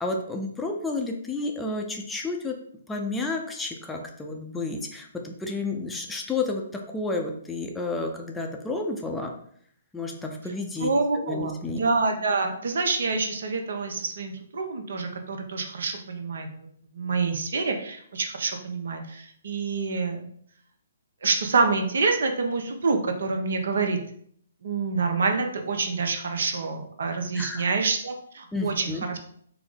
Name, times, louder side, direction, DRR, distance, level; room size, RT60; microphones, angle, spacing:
voice 1, 0.0-2.5 2.9-6.6 6.9-9.3 9.9-11.8 27.3-27.7 28.5-29.0, left 3 dB, 10° left, 1 dB, 0.5 m, -31 dB
voice 2, 10.8-16.7 16.9-20.3 21.2-24.0 24.6-29.2, right 4 dB, 65° right, 5 dB, 0.6 m, -27 dB
4.5 x 2.0 x 3.6 m, 0.64 s
hypercardioid pair, 135°, 0 cm